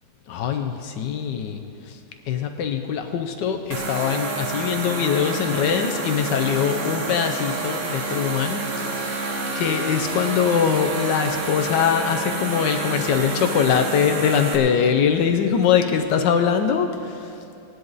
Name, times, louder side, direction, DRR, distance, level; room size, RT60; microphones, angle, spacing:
voice 1, 0.3-1.6 1.9-2.0 2.3-9.2 9.5-17.3, left 7 dB, 80° left, 5 dB, 1.4 m, -22 dB
sound 1, 3.7-14.6, right 3 dB, 50° right, 1.4 m, -28 dB
18.0 x 10.5 x 4.0 m, 2.8 s
omnidirectional pair, 1.9 m